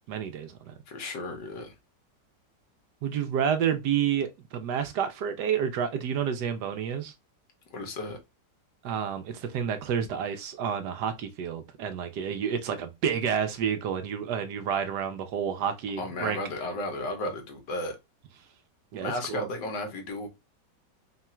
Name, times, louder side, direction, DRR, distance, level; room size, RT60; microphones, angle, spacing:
voice 1, 0.1-0.7 3.0-7.1 8.8-16.4 18.9-19.5, right 8 dB, 70° right, 1.2 m, -29 dB
voice 2, 0.9-1.7 7.7-8.2 16.0-18.0 19.0-20.3, left 2 dB, 75° left, 1.7 m, -34 dB
3.7 x 2.4 x 4.2 m
omnidirectional pair, 1.9 m